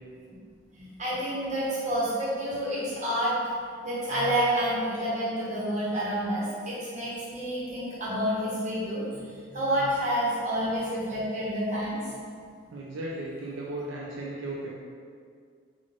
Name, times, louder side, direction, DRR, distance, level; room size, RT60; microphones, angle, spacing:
voice 1, 0.7-3.3 3.8-12.0, equal, 35° right, -9 dB, 1.1 m, -29 dB
voice 2, 12.7-14.7, right 1 dB, 70° right, -5 dB, 0.5 m, -35 dB
3.6 x 2.5 x 3.6 m, 2.1 s
head